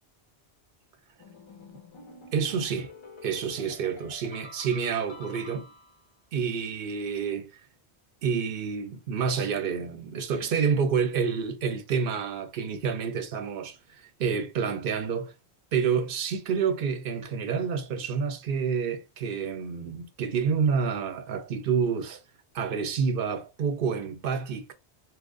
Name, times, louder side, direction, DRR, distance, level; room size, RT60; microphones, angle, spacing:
sound 1, 1.2-6.1, left 2 dB, 45° left, 0.4 m, -48 dB
voice 1, 2.3-2.9 3.2-5.7 6.3-7.5 8.2-15.3 15.7-22.2 22.5-24.7, right 6 dB, 65° right, 0.7 m, -28 dB
2.9 x 2.0 x 3.7 m
omnidirectional pair, 1.1 m